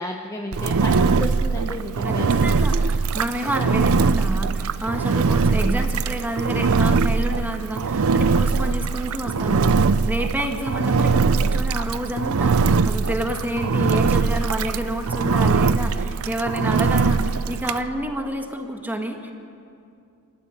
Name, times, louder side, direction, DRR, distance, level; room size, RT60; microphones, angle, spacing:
voice 1, 0.0-2.3, left 1 dB, 15° left, 0 dB, 1.1 m, -32 dB
Engine, 0.5-17.8, right 4 dB, 80° right, 0.6 m, -21 dB
voice 2, 2.0-19.3, equal, 10° right, 4 dB, 1.7 m, -29 dB
25.5 x 13.5 x 9.0 m, 2.5 s
head